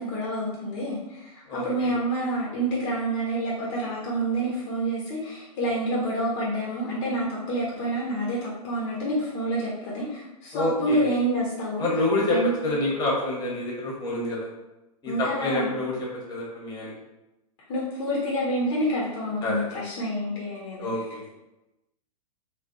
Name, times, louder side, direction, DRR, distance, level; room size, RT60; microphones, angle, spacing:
voice 1, 0.0-11.9 12.3-12.5 15.1-15.7 17.7-20.9, right 1 dB, 40° left, -4 dB, 0.8 m, -28 dB
voice 2, 1.5-1.9 10.5-11.1 11.8-12.4 12.6-14.5 15.0-15.9 16.3-16.9 19.4-19.6 20.8-21.2, left 2 dB, 20° left, -4 dB, 1.1 m, -27 dB
3.4 x 2.4 x 2.5 m, 0.97 s
figure-of-eight pair, 110°, 20 cm